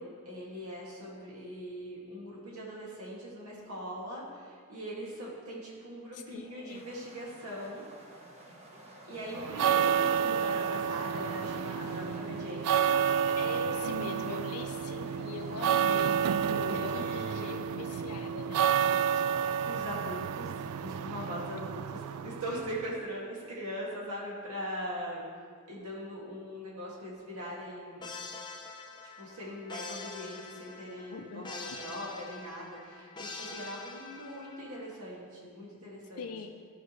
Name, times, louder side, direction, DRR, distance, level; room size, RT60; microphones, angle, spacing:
voice 1, 0.0-7.8 9.1-12.9 15.6-16.1 16.5-17.5 19.3-25.3 25.7-28.1 29.2-36.3, equal, 70° right, -5 dB, 2.2 m, -41 dB
voice 2, 6.1-6.8 13.3-16.4 16.7-19.2 31.1-31.8 36.2-36.5, left 5 dB, 80° left, 5 dB, 0.5 m, -42 dB
sound 1, 6.4-17.5, right 1 dB, 30° right, 1.0 m, -52 dB
sound 2, 9.4-22.9, right 8 dB, 90° right, 0.3 m, -30 dB
sound 3, 28.0-34.9, left 3 dB, 20° left, 0.6 m, -45 dB
13.0 x 5.3 x 3.2 m, 2.1 s
head